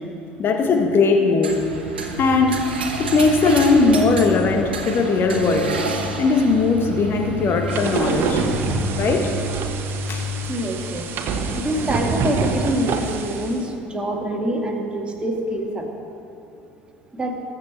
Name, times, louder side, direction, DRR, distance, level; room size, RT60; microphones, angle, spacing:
voice 1, 0.4-1.6 2.2-2.7 3.0-5.8 6.2-8.4 9.0-9.3 10.1-10.3, left 3 dB, 40° left, 4 dB, 1.7 m, -19 dB
sound 1, 1.4-8.6, right 4 dB, 75° right, 1.2 m, -31 dB
sound 2, 2.2-12.3, left 3 dB, 80° left, 0.9 m, -33 dB
sound 3, 7.7-13.6, right 4 dB, 45° right, 1.3 m, -26 dB
voice 2, 10.5-11.0 11.6-15.8 17.1-17.3, right 1 dB, 20° right, 1 dB, 2.2 m, -25 dB
21.0 x 7.1 x 4.5 m, 2.9 s
figure-of-eight pair, 60°, 5 cm